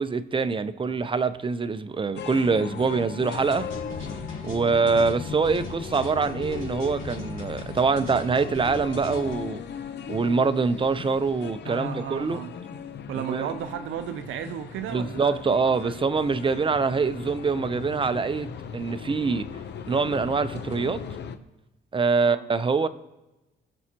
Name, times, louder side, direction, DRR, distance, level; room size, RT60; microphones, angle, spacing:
voice 1, 0.0-3.7 4.4-9.6 10.1-12.4 13.2-13.5 14.9-19.5 19.9-21.0 21.9-22.9, right 4 dB, 25° right, 12 dB, 0.6 m, -24 dB
sound 1, 2.2-21.4, left 7 dB, 60° left, 0.7 m, -38 dB
sound 2, 3.3-9.3, left 2 dB, 45° left, 3.8 m, -38 dB
voice 2, 11.6-12.5 13.1-15.4 15.8-16.0 22.2-22.4, right 9 dB, 80° right, 8 dB, 0.6 m, -34 dB
17.5 x 6.3 x 2.9 m, 1.0 s
cardioid pair, 90°, 20 cm